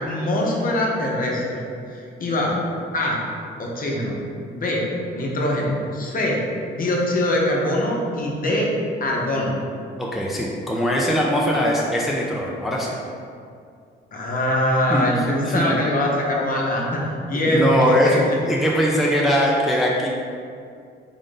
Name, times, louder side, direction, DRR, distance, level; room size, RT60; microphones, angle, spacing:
voice 1, 0.0-1.6 1.9-2.6 2.9-3.2 3.6-4.2 4.5-4.9 5.1-6.4 6.7-8.7 9.0-9.5 14.1-17.0 17.3-18.2, left 1 dB, 45° left, -2 dB, 0.8 m, -23 dB
voice 2, 10.0-12.9 14.9-15.0 15.4-15.8 17.3-20.1, equal, ahead, -3 dB, 0.5 m, -21 dB
3.7 x 2.5 x 3.7 m, 2.3 s
cardioid pair, 90°, 20 cm